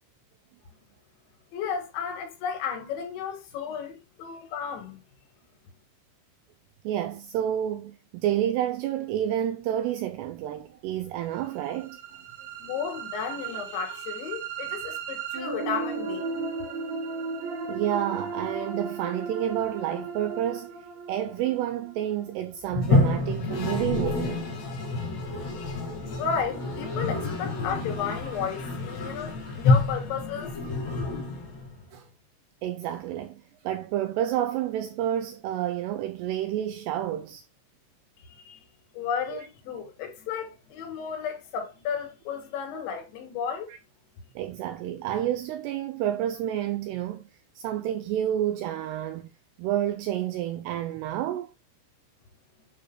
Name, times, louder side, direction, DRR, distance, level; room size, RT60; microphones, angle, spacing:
voice 1, 1.5-5.0 12.6-16.3 26.2-30.6 38.2-38.7 38.9-43.7, left 7 dB, 80° left, 3.9 m, -33 dB
voice 2, 6.8-12.0 17.7-24.5 31.9-32.1 32.6-37.4 39.3-39.5 44.4-47.3 47.6-49.3 49.6-51.5, right 11 dB, 90° right, 2.3 m, -29 dB
sound 1, 11.5-23.5, right 5 dB, 70° right, 4.2 m, -36 dB
Toilet flush, 22.7-31.8, left 3 dB, 50° left, 2.5 m, -28 dB
9.0 x 6.5 x 2.2 m
omnidirectional pair, 5.3 m